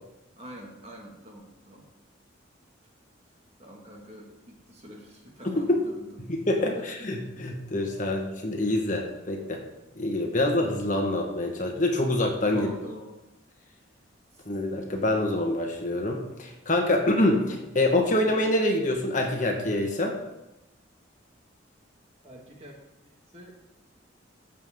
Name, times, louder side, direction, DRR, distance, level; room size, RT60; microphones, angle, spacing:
voice 1, 0.4-1.9 3.6-6.1 6.6-6.8 12.5-13.1 22.2-22.8 23.3-23.5, equal, 30° right, -1 dB, 2.0 m, -45 dB
voice 2, 5.4-5.9 6.2-9.6 10.0-12.7 14.5-20.2, left 1 dB, 40° left, 2 dB, 1.5 m, -26 dB
14.5 x 7.7 x 3.8 m, 0.95 s
head